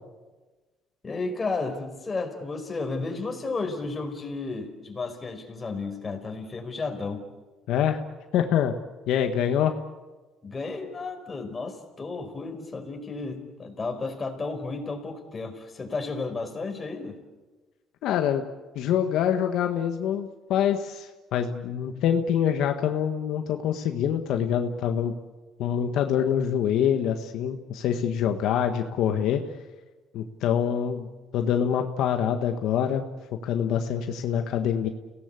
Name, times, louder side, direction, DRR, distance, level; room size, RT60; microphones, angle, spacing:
voice 1, 1.0-7.2 10.4-17.2, left 3 dB, 25° left, 4 dB, 4.9 m, -33 dB
voice 2, 7.7-8.0 8.3-8.7 9.1-9.8 18.0-18.4 18.7-25.1 25.6-29.4 30.1-31.1 31.3-33.0 33.4-34.9, left 9 dB, 75° left, 6 dB, 1.5 m, -25 dB
29.5 x 18.0 x 8.4 m, 1.3 s
cardioid pair, 105°, 0 cm